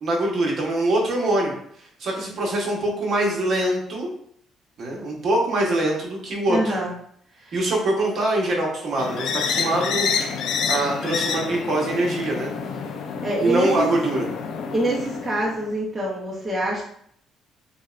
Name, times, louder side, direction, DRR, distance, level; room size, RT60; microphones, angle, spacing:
voice 1, 0.0-1.5 2.0-4.1 4.8-6.8 7.5-10.1 10.7-12.5 13.4-14.3, right 1 dB, 45° right, -2 dB, 1.0 m, -23 dB
voice 2, 6.5-6.9 7.4-7.6 13.2-13.9 14.7-16.8, right 1 dB, 10° right, -5 dB, 0.6 m, -25 dB
sound 1, 9.0-15.7, left 5 dB, 65° left, 0.4 m, -28 dB
6.3 x 2.2 x 2.4 m, 0.67 s
cardioid pair, 175°, 0 cm